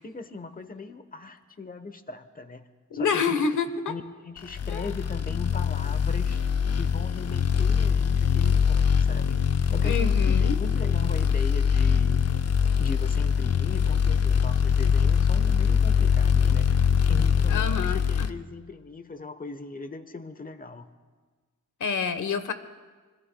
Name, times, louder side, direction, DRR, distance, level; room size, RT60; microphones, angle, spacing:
voice 1, 0.0-2.7 2.9-3.4 3.9-6.4 6.8-9.4 9.7-12.2 12.8-16.8 17.1-20.9, left 3 dB, 25° left, 10 dB, 1.1 m, -39 dB
voice 2, 2.9-3.9 4.7-4.9 9.8-10.6 17.5-18.3 21.8-22.5, left 5 dB, 70° left, 10 dB, 1.2 m, -28 dB
sound 1, 4.5-18.3, left 7 dB, 50° left, 0.7 m, -23 dB
26.0 x 21.5 x 2.3 m, 1.4 s
cardioid pair, 90°, 31 cm